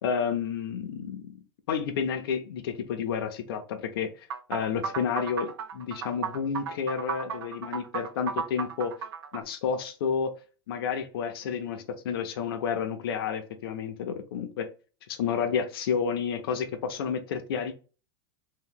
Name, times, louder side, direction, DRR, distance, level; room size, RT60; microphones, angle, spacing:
voice 1, 0.0-1.4 1.7-8.9 9.3-10.3 10.7-14.7 15.1-17.7, left 7 dB, 75° left, 0.5 m, -30 dB
sound 1, 4.3-9.4, right 7 dB, 80° right, 0.5 m, -34 dB
2.8 x 2.1 x 3.5 m
supercardioid pair, 175°, 12 cm